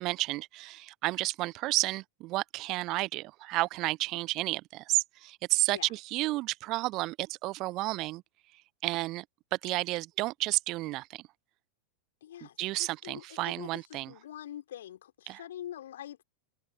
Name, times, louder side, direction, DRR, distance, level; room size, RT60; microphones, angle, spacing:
voice 1, 0.0-8.2 8.8-9.2 9.5-11.2 12.6-14.1 15.3-15.4, right 19 dB, 40° right, 0.8 m, -31 dB
voice 2, 12.2-16.2, left 11 dB, 60° left, 3.7 m, -45 dB
figure-of-eight pair, 90°, 0 cm